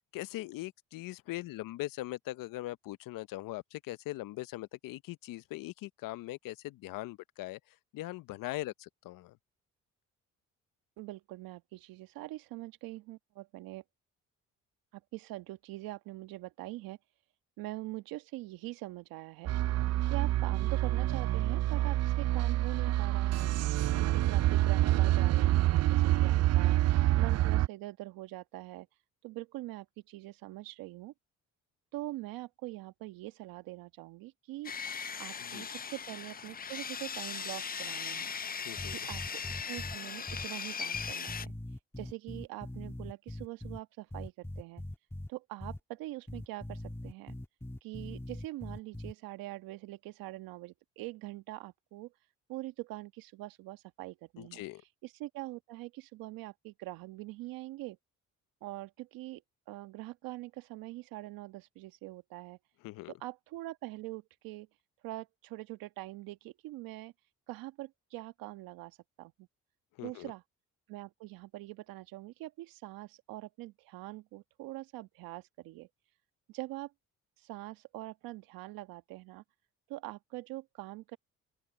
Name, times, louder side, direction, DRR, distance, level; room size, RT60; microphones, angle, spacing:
voice 1, 0.1-7.6 7.9-9.4 35.4-35.7 38.6-39.1 54.4-54.8 62.8-63.1 70.0-70.3, left 17 dB, 75° left, 0.7 m, -41 dB
voice 2, 11.0-13.8 14.9-17.0 17.6-19.5 20.1-23.5 24.0-26.8 27.2-28.9 29.2-31.1 31.9-34.7 35.2-38.3 38.9-39.2 39.6-41.5 42.0-44.8 45.3-47.3 47.8-52.1 52.5-54.6 55.0-58.0 58.6-59.4 59.7-62.6 63.1-64.7 65.0-67.1 67.5-69.5 70.0-70.4 70.9-75.9 76.5-76.9 77.4-79.4 79.9-81.2, right 18 dB, 85° right, 1.5 m, -43 dB
sound 1, 19.5-27.7, right 15 dB, 50° right, 0.4 m, -27 dB
Sawing, 34.6-41.5, left 6 dB, 25° left, 0.6 m, -39 dB
sound 2, 38.8-40.0 40.3-40.5 40.9-43.8 44.1-45.3 45.6-45.8 46.3-49.1, left 1 dB, 5° left, 1.7 m, -41 dB
open air
supercardioid pair, 65°, 34 cm